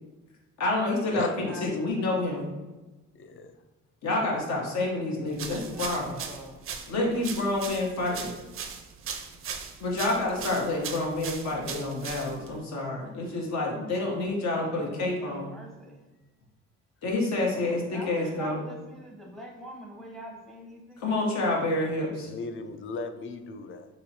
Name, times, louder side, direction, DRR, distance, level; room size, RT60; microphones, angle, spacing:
voice 1, 0.6-2.5 4.0-6.1 6.9-8.3 9.8-15.5 17.0-18.6 21.0-22.3, left 2 dB, 65° left, -1 dB, 1.0 m, -28 dB
voice 2, 1.1-1.8 3.1-3.5 21.8-23.9, left 3 dB, 45° left, 8 dB, 0.4 m, -39 dB
sound 1, 5.3-12.6, right 6 dB, 45° right, 0.4 m, -39 dB
voice 3, 5.5-6.7 14.7-16.0 17.5-21.1, equal, ahead, -1 dB, 0.7 m, -44 dB
3.0 x 3.0 x 2.7 m, 1.1 s
cardioid pair, 90°, 30 cm